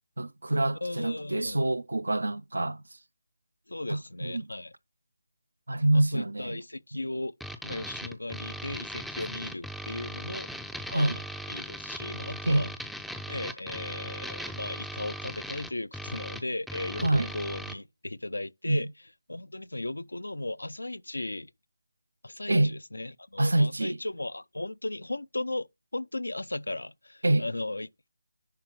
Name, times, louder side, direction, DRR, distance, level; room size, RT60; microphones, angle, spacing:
voice 1, 0.2-2.8 3.9-4.5 5.7-6.6 10.9-11.2 12.5-12.7 17.0-17.3 18.7-18.8 22.5-22.8 23.4-24.0 27.2-27.4, right 1 dB, 70° right, 0.5 m, -26 dB
voice 2, 0.8-1.6 3.7-4.7 5.9-7.3 7.6-10.5 10.9-11.2 11.5-12.7 13.3-18.9 19.3-21.5 22.2-28.1, left 2 dB, 80° left, 0.4 m, -36 dB
sound 1, 7.4-17.8, equal, ahead, 0.5 m, -39 dB
10.5 x 3.7 x 4.6 m
figure-of-eight pair, 155°, 0 cm